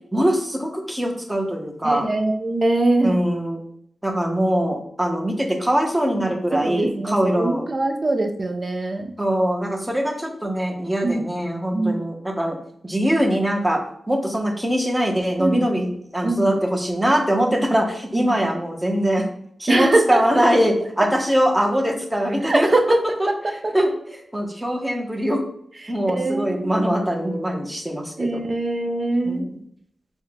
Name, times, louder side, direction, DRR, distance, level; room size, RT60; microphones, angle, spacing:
voice 1, 0.1-2.1 3.0-3.6 4.0-7.7 9.2-12.6 12.8-13.8 14.1-19.3 19.6-22.7 23.2-25.4 25.9-28.4 29.2-29.5, equal, 10° right, 2 dB, 0.9 m, -22 dB
voice 2, 1.8-3.2 6.2-6.3 6.6-9.1 11.0-11.3 11.7-12.0 15.4-15.7 16.2-16.6 18.1-18.4 19.7-20.4 21.0-21.1 22.4-23.0 26.1-26.8 28.2-29.4, right 2 dB, 45° right, 4 dB, 0.6 m, -22 dB
4.4 x 2.2 x 3.4 m, 0.70 s
cardioid pair, 55°, 0 cm